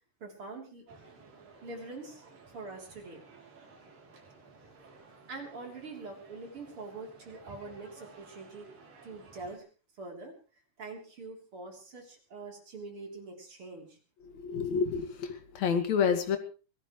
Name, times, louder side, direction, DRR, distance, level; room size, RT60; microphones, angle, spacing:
voice 1, 0.2-0.8 1.6-2.2 2.5-3.2 5.3-8.7 9.0-9.7 10.0-10.3 10.8-14.0, right 3 dB, 40° right, 1 dB, 4.2 m, -44 dB
sound 1, 0.9-9.6, right 4 dB, 90° right, 5.1 m, -55 dB
voice 2, 14.2-16.4, left 6 dB, 60° left, 6 dB, 3.1 m, -29 dB
24.0 x 17.5 x 3.2 m, 0.37 s
omnidirectional pair, 3.8 m